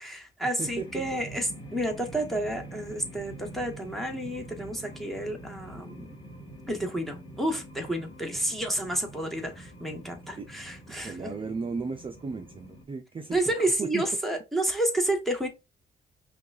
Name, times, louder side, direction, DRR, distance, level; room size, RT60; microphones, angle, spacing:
voice 1, 0.0-6.1 6.7-11.3 13.3-15.5, right 1 dB, ahead, 1.3 m, -30 dB
sound 1, 0.6-12.8, right 1 dB, 20° left, 1.6 m, -45 dB
voice 2, 10.9-14.0, right 4 dB, 25° right, 0.5 m, -35 dB
5.8 x 2.4 x 2.4 m
cardioid pair, 90°, 20 cm